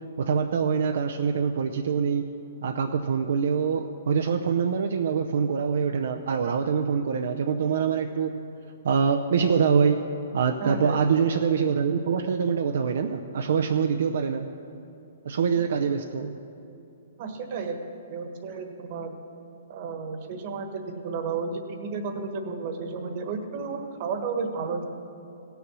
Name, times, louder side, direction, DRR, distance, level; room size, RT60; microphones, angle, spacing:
voice 1, 0.2-2.3 2.6-8.3 8.8-10.1 10.3-14.5 15.2-16.3, right 6 dB, 70° right, 5 dB, 0.6 m, -24 dB
voice 2, 10.6-11.0 17.2-17.8 18.1-19.1 19.7-24.8, right 4 dB, 45° right, 6 dB, 1.3 m, -32 dB
16.5 x 6.9 x 6.2 m, 2.8 s
hypercardioid pair, 150°, 0 cm